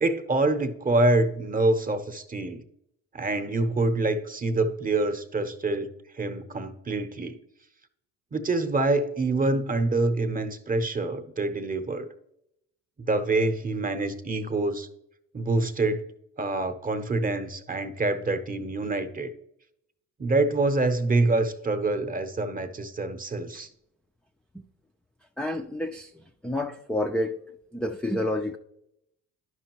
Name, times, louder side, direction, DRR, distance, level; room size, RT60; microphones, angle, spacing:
voice 1, 0.0-2.6 3.1-7.4 8.3-12.1 13.0-14.9 15.3-16.0 16.4-19.3 20.2-23.7, right 2 dB, 25° right, 8 dB, 0.8 m, -26 dB
voice 2, 25.4-26.1 26.4-27.4 27.7-28.6, left 1 dB, 5° left, 4 dB, 0.3 m, -29 dB
11.0 x 5.2 x 3.0 m, 0.77 s
cardioid pair, 90°, 34 cm